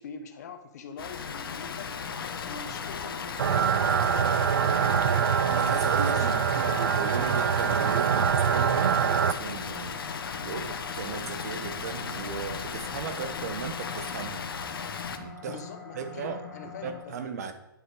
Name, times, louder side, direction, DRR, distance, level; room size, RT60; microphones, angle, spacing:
voice 1, 0.0-1.9 2.5-5.2 6.1-6.9 15.4-17.2, left 6 dB, 45° left, 9 dB, 1.2 m, -44 dB
Water, 1.0-15.2, left 6 dB, 80° left, 1.4 m, -36 dB
sound 1, 2.0-17.0, left 5 dB, 5° left, 3.5 m, -46 dB
sound 2, 3.4-9.3, right 8 dB, 75° right, 0.6 m, -24 dB
voice 2, 5.5-10.0 10.4-14.5 15.2-15.6 15.9-16.4 16.8-17.5, right 6 dB, 45° right, 8 dB, 1.4 m, -36 dB
10.5 x 7.8 x 5.0 m, 0.95 s
hypercardioid pair, 170°, 12 cm